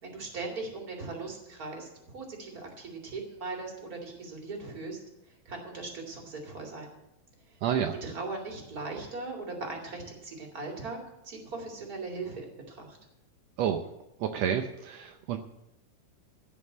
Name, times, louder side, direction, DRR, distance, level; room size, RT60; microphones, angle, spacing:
voice 1, 0.0-5.0 5.5-6.9 8.0-11.0 11.2-13.0, right 3 dB, 30° right, 0 dB, 2.6 m, -39 dB
voice 2, 7.6-7.9 13.6-13.9 14.2-15.4, right 9 dB, 75° right, 5 dB, 1.5 m, -29 dB
16.0 x 5.4 x 8.4 m, 0.89 s
omnidirectional pair, 3.8 m